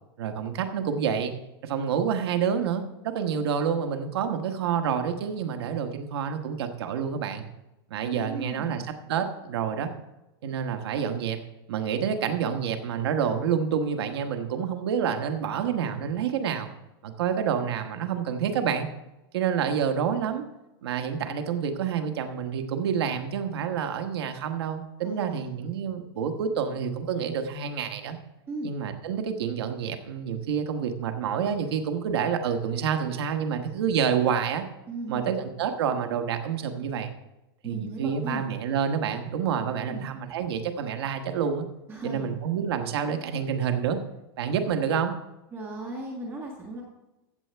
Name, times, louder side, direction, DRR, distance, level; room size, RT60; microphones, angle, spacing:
voice 1, 0.2-1.3 1.6-7.4 7.9-8.8 9.1-9.9 10.4-11.4 11.7-16.7 17.0-18.9 19.3-20.4 20.8-28.2 28.6-34.6 35.1-37.1 37.6-41.7 42.0-44.0 44.4-45.1, right 7 dB, 75° right, 6 dB, 1.3 m, -28 dB
voice 2, 8.1-8.8 25.0-25.5 28.5-28.7 34.9-35.4 37.6-38.4 39.9-40.1 41.9-42.3 45.5-46.8, right 1 dB, 15° right, 0 dB, 1.5 m, -36 dB
15.0 x 7.7 x 3.5 m, 0.98 s
supercardioid pair, 160°, 13 cm